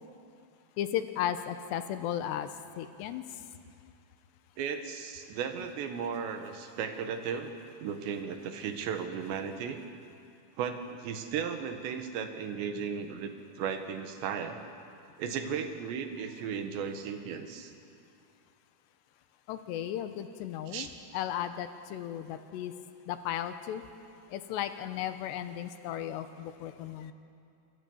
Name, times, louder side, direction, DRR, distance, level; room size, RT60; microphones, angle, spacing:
voice 1, 0.8-3.5 19.5-20.9 21.1-22.7 23.1-23.8 24.3-27.1, left 10 dB, 80° left, 3.1 m, -35 dB
voice 2, 4.6-7.5 7.8-9.8 10.6-14.6 15.2-17.7 20.7-20.9, right 7 dB, 80° right, 3.7 m, -35 dB
27.0 x 22.5 x 7.2 m
omnidirectional pair, 5.1 m